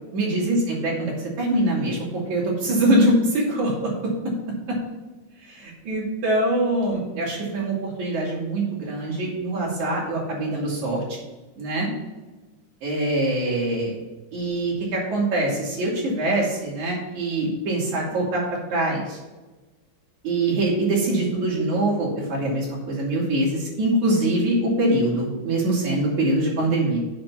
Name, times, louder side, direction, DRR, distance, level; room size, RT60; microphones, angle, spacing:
voice 1, 0.1-2.0 2.3-4.1 4.7-4.8 5.4-11.2 11.6-11.9 12.8-14.0 14.3-18.4 18.7-19.2 20.2-27.0, right 1 dB, 70° right, -4 dB, 4.2 m, -23 dB
7.5 x 6.2 x 5.7 m, 1.2 s
omnidirectional pair, 3.4 m